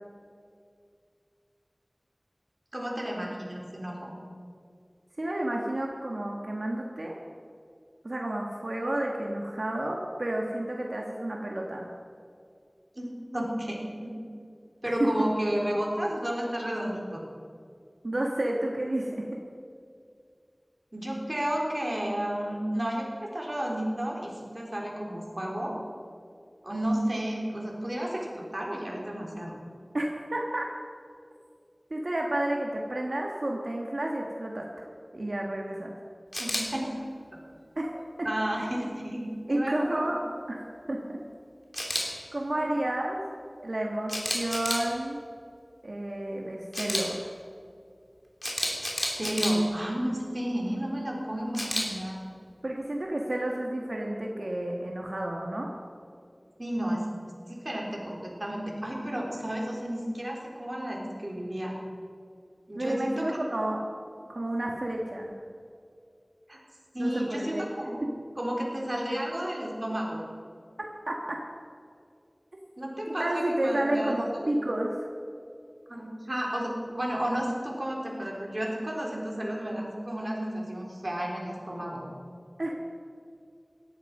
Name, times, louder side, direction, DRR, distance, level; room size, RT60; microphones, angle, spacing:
voice 1, 2.7-4.1 13.0-14.1 14.8-17.2 20.9-25.8 26.6-29.6 36.4-36.9 38.2-40.1 42.5-42.7 49.2-52.2 56.6-61.7 62.7-63.4 66.5-66.6 66.9-68.0 68.4-70.2 72.8-74.5 75.9-82.0, equal, 40° right, -2 dB, 3.8 m, -32 dB
voice 2, 5.2-7.1 8.0-11.9 15.0-15.1 18.0-19.2 29.9-30.7 31.9-34.9 35.1-35.9 37.7-38.3 38.6-38.8 39.5-40.2 40.5-40.6 40.9-41.2 42.3-43.2 43.6-45.2 45.8-47.3 52.6-55.7 62.7-63.9 64.3-65.3 67.0-67.7 71.1-71.2 73.1-75.0 82.6-82.8, right 1 dB, 85° right, -1 dB, 1.4 m, -31 dB
Camera, 36.3-36.6 41.7-42.0 44.1-44.8 46.7-47.0 48.4-49.5 51.5-51.8, left 1 dB, 40° left, 3.1 m, -29 dB
17.5 x 12.0 x 5.4 m, 2.3 s
wide cardioid pair, 45°, 0 cm